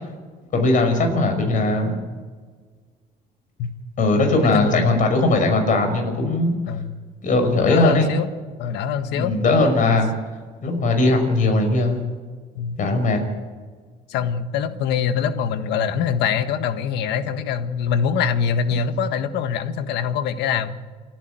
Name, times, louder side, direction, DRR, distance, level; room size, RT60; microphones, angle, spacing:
voice 1, 0.5-1.9 4.0-6.6 7.2-8.1 9.1-10.1 10.6-12.0 12.8-13.2, left 2 dB, 50° left, 4 dB, 5.8 m, -19 dB
voice 2, 4.5-4.9 6.7-7.0 7.6-8.3 8.6-9.3 12.5-12.8 14.1-20.7, left 7 dB, 85° left, 10 dB, 1.5 m, -24 dB
28.5 x 11.0 x 9.3 m, 1.5 s
cardioid pair, 110°, 17 cm